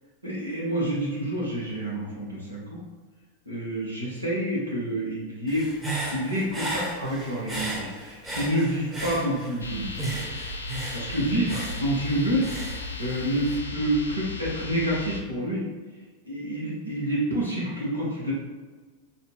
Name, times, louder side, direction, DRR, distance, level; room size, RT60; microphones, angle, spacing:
voice 1, 0.2-2.8 3.5-5.6 6.0-9.9 10.9-12.5 13.0-15.6 16.3-18.3, right 1 dB, 85° right, -6 dB, 1.1 m, -28 dB
Human voice / Breathing, 5.5-9.6 10.0-13.6, right 1 dB, 10° right, 1.0 m, -35 dB
sound 1, 9.6-15.2, left 2 dB, 80° left, 0.4 m, -36 dB
3.9 x 2.4 x 3.5 m, 1.4 s
figure-of-eight pair, 90°, 0 cm